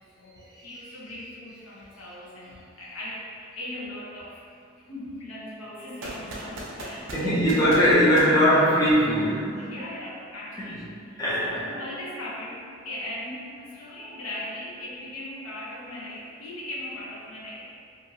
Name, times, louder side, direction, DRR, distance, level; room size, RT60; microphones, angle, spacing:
voice 1, 0.2-4.4 4.8-7.5 9.6-17.6, left 1 dB, 85° left, -6 dB, 0.8 m, -39 dB
sound 1, 6.0-9.2, right 1 dB, 60° right, 0.4 m, -39 dB
voice 2, 7.1-9.6 10.6-10.7 11.2-11.8, equal, 15° left, -9 dB, 0.5 m, -20 dB
2.7 x 2.5 x 2.7 m, 2.3 s
head